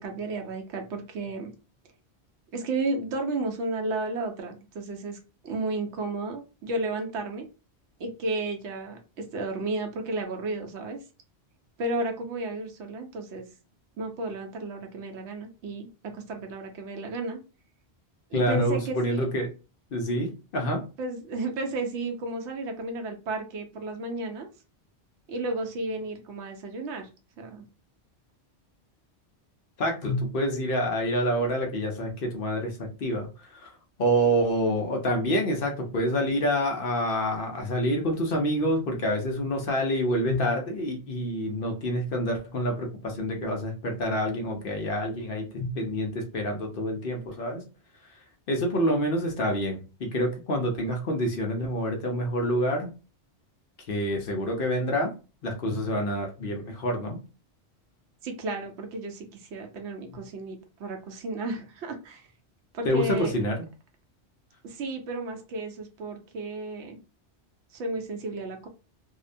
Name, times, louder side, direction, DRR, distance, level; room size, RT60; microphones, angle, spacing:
voice 1, 0.0-1.5 2.5-7.5 8.0-11.0 11.8-13.5 14.0-17.4 18.3-19.2 21.0-24.5 25.3-27.1 27.4-27.6 58.2-62.3 62.7-63.3 64.6-67.0 67.7-68.7, right 2 dB, 85° right, 4 dB, 0.9 m, -33 dB
voice 2, 18.3-19.5 19.9-20.8 29.8-33.7 34.0-47.6 48.5-52.9 53.9-55.1 55.4-57.2 62.8-63.6, equal, 60° left, 2 dB, 0.8 m, -27 dB
2.7 x 2.1 x 2.5 m, 0.32 s
omnidirectional pair, 1.1 m